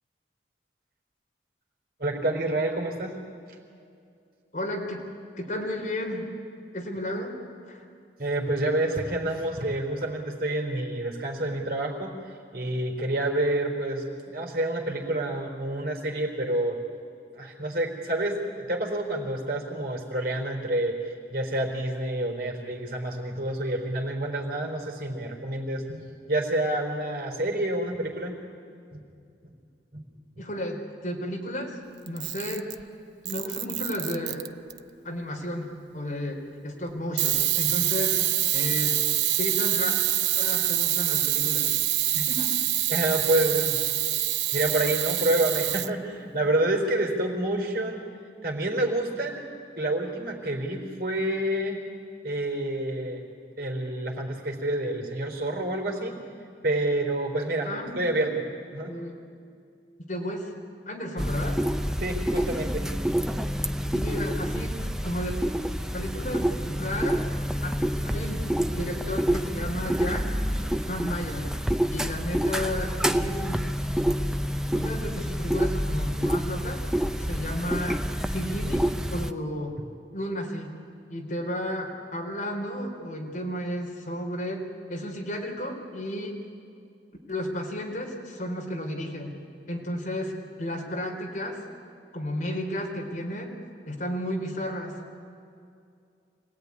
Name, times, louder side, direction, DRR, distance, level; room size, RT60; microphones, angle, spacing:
voice 1, 2.0-3.2 3.5-3.6 8.2-16.8 17.3-26.0 26.3-28.3 28.9-29.0 29.4-29.5 29.9-30.0 30.4-30.5 42.9-43.8 44.5-48.0 48.4-49.4 49.8-51.8 52.2-53.2 53.6-56.2 56.6-58.4 58.7-58.9 62.0-62.9, right 1 dB, 55° right, 1 dB, 3.9 m, -28 dB
voice 2, 4.5-5.1 5.4-6.3 6.7-7.4 7.7-7.8 30.4-31.8 32.0-32.7 33.2-34.5 35.0-38.2 38.5-39.0 39.4-39.9 40.3-41.7 42.1-42.5 57.6-58.3 58.8-59.1 60.1-60.5 60.9-61.6 63.9-65.4 65.9-67.3 67.6-67.8 68.0-68.5 68.8-70.3 70.6-71.5 71.9-73.7 74.1-74.3 74.7-76.8 77.2-78.8 79.1-79.8 80.1-80.8 81.1-84.6 84.9-86.4 87.3-89.4 89.7-90.3 90.6-91.6 92.1-93.5 93.9-95.0, left 1 dB, 45° left, 0 dB, 3.9 m, -33 dB
Camera, 32.1-32.8 33.3-34.8 37.2-45.9, right 14 dB, 85° right, 0.7 m, -26 dB
sound 1, 61.2-79.3, equal, 5° right, 0.6 m, -28 dB
25.5 x 18.0 x 9.7 m, 2.4 s
head